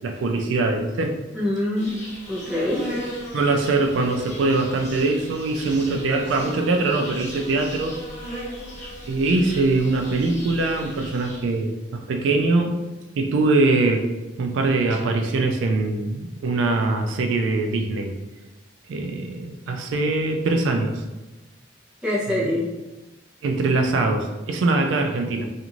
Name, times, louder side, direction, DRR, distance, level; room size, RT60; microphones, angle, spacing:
voice 1, 0.0-1.2 3.3-8.0 9.1-12.8 13.2-14.1 14.4-18.1 18.9-21.0 22.3-22.4 23.4-25.5, right 3 dB, 85° right, 4 dB, 0.3 m, -22 dB
voice 2, 1.3-2.0 2.3-2.9 22.0-22.7, left 1 dB, 5° right, -7 dB, 0.7 m, -24 dB
Insect, 1.8-11.6, equal, 40° left, 0.9 m, -38 dB
2.5 x 2.4 x 2.9 m, 1.1 s
head